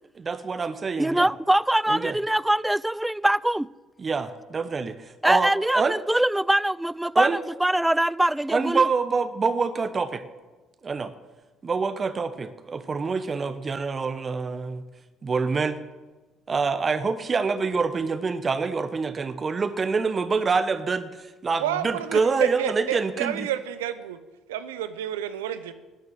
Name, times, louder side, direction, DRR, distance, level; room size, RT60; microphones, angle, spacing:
voice 1, 0.2-1.3 1.9-2.2 4.0-5.9 7.1-7.4 8.5-10.2 10.8-11.1 11.6-14.8 15.2-15.8 16.5-23.5, right 4 dB, 35° right, 1.1 m, -26 dB
voice 2, 1.0-3.7 5.2-8.9, right 1 dB, 5° right, 0.3 m, -23 dB
voice 3, 21.6-24.2 24.5-25.7, right 11 dB, 90° right, 0.7 m, -30 dB
13.0 x 9.4 x 7.5 m
hypercardioid pair, 60°, 0 cm